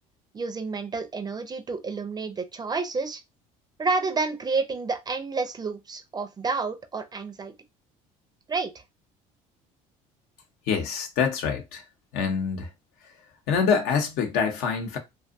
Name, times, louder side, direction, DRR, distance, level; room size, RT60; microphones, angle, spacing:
voice 1, 0.3-3.2 3.8-7.5 8.5-8.8, right 4 dB, 25° right, 0.5 m, -29 dB
voice 2, 10.7-11.8 12.1-12.7 13.5-15.0, left 6 dB, 70° left, 0.8 m, -25 dB
2.5 x 2.3 x 2.5 m
supercardioid pair, 90°, 16 cm